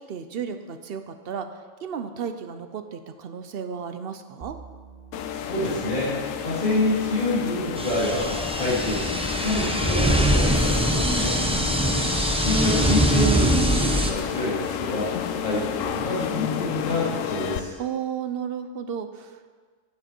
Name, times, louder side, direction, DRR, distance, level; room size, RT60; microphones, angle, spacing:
voice 1, 0.0-1.5 1.8-4.6 11.5-12.2 17.8-19.5, right 7 dB, 55° right, 8 dB, 0.8 m, -33 dB
sound 1, 4.4-15.9, right 6 dB, 35° right, 1.0 m, -47 dB
sound 2, 5.1-17.6, left 9 dB, 85° left, 1.0 m, -31 dB
voice 2, 5.3-11.3 12.2-15.1 15.4-17.7, left 1 dB, 40° left, -10 dB, 2.6 m, -27 dB
sound 3, 7.8-14.1, right 1 dB, 5° right, 0.5 m, -23 dB
11.5 x 7.4 x 4.4 m, 1.5 s
omnidirectional pair, 1.3 m